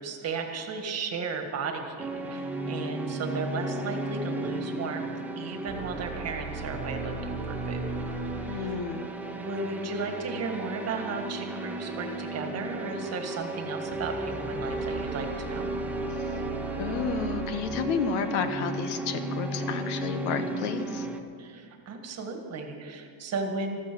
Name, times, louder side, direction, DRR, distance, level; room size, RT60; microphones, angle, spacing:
voice 1, 0.0-5.1 5.4-7.9 8.5-8.9 9.3-15.7 21.4-23.8, right 4 dB, 30° right, 4 dB, 1.6 m, -35 dB
sound 1, 2.0-21.2, right 2 dB, 5° right, 0.4 m, -34 dB
sound 2, 5.6-9.4 13.9-18.7, right 2 dB, 15° left, 2.2 m, -40 dB
voice 2, 8.4-9.1 16.8-21.1, left 6 dB, 80° left, 9 dB, 1.3 m, -31 dB
14.0 x 13.5 x 6.1 m, 2.4 s
cardioid pair, 170°, 48 cm